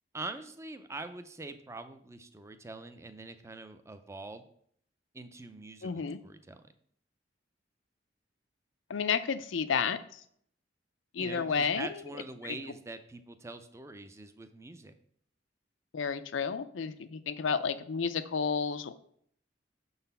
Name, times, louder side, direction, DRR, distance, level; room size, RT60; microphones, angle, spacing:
voice 1, 0.1-4.5 5.1-6.6 11.2-14.9, right 2 dB, 15° right, 9 dB, 0.5 m, -44 dB
voice 2, 5.8-6.2 8.9-10.2 11.1-11.9 15.9-18.9, left 6 dB, 80° left, 12 dB, 0.5 m, -31 dB
6.5 x 4.0 x 5.4 m, 0.65 s
head